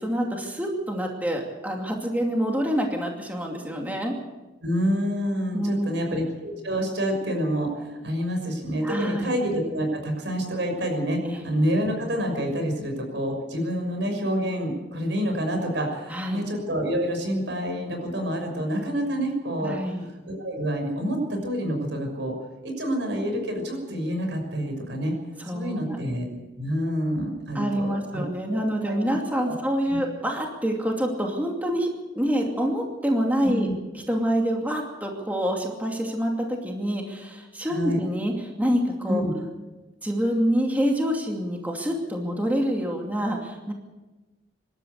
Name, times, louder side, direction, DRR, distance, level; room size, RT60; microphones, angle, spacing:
voice 1, 0.0-4.2 5.5-6.1 8.8-9.3 11.2-11.4 16.1-16.4 19.6-20.1 25.4-26.1 27.5-31.9 32.1-33.7 33.9-39.2 40.0-43.7, equal, 10° right, 1 dB, 2.6 m, -26 dB
voice 2, 4.6-19.8 20.3-22.3 22.6-25.1 25.5-26.2 26.6-28.2 28.5-29.2 29.4-29.6 29.9-30.0 33.4-33.7 37.6-38.0 39.1-39.5, equal, 90° right, 3 dB, 6.2 m, -28 dB
26.0 x 13.0 x 8.2 m, 1.2 s
head